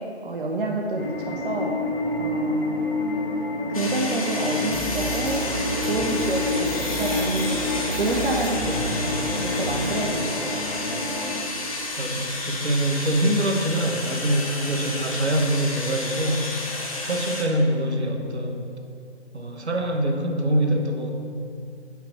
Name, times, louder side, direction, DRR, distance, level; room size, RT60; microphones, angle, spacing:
voice 1, 0.0-1.8 2.2-2.9 3.7-5.5 5.8-7.7 7.9-10.9 11.7-11.8, right 2 dB, 50° right, 0 dB, 0.7 m, -29 dB
sound 1, 1.0-11.4, left 2 dB, 55° left, 1.1 m, -29 dB
sound 2, 3.7-17.4, left 2 dB, 30° left, 0.8 m, -31 dB
sound 3, 4.7-9.9, right 2 dB, 10° right, 0.7 m, -31 dB
voice 2, 12.0-16.5 17.0-18.7 19.3-21.1, right 1 dB, 70° right, 3 dB, 1.1 m, -24 dB
7.4 x 5.7 x 4.5 m, 2.5 s
figure-of-eight pair, 150°, 34 cm